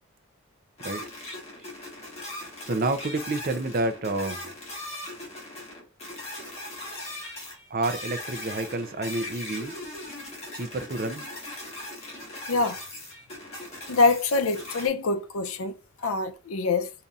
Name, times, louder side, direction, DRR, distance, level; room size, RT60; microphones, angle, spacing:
sound 1, 0.8-14.9, left 1 dB, 30° left, 1.3 m, -39 dB
voice 1, 2.6-4.5 7.7-9.7 10.5-11.2, right 2 dB, 40° right, 0.5 m, -29 dB
voice 2, 13.9-16.9, left 3 dB, 80° left, 0.5 m, -25 dB
5.2 x 2.8 x 2.4 m
head